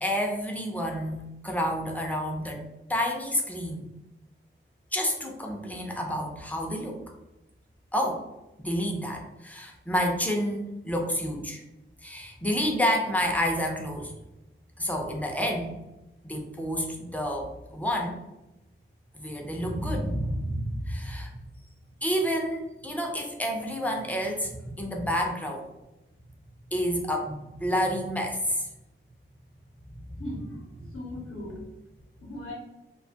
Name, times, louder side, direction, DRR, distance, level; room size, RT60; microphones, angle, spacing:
voice 1, 0.0-3.9 4.9-7.0 7.9-8.2 8.6-11.6 12.0-14.1 14.8-15.7 16.2-18.2 19.1-21.3 22.0-25.7 26.7-28.7, equal, 5° left, 1 dB, 0.4 m, -29 dB
voice 2, 30.2-31.6 32.2-32.5, left 1 dB, 80° left, -3 dB, 0.7 m, -39 dB
2.4 x 2.2 x 2.7 m, 0.98 s
wide cardioid pair, 155°, 21 cm